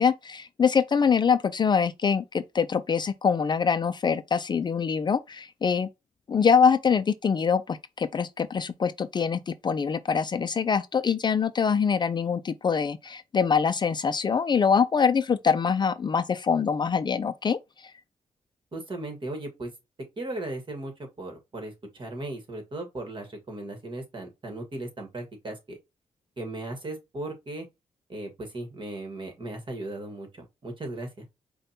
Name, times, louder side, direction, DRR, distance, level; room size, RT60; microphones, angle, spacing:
voice 1, 0.0-5.9 6.3-17.6, left 6 dB, 40° left, 0.4 m, -24 dB
voice 2, 18.7-19.7 20.2-25.8 26.4-27.7 28.1-31.3, right 2 dB, 45° right, 1.4 m, -37 dB
5.1 x 2.3 x 2.7 m
cardioid pair, 85°, 12 cm